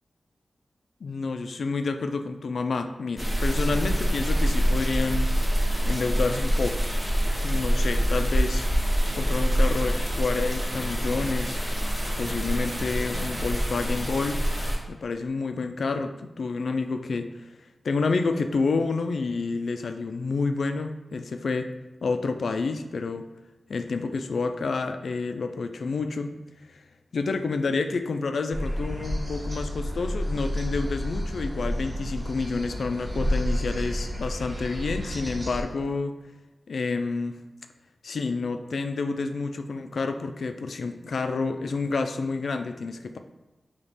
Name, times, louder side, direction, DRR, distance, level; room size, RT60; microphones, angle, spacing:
voice 1, 1.0-5.3 5.8-6.8 7.4-8.7 9.2-11.8 12.2-14.4 14.9-17.5 17.8-21.7 22.0-23.2 23.7-26.3 26.7-26.8 27.1-36.1 36.7-37.4 38.0-43.2, left 4 dB, 80° left, 7 dB, 0.3 m, -29 dB
sound 1, 3.2-14.8, equal, 10° right, 1.0 m, -25 dB
sound 2, 28.5-35.6, equal, 35° right, 0.7 m, -30 dB
4.0 x 2.9 x 3.4 m, 1.0 s
wide cardioid pair, 80°, 0 cm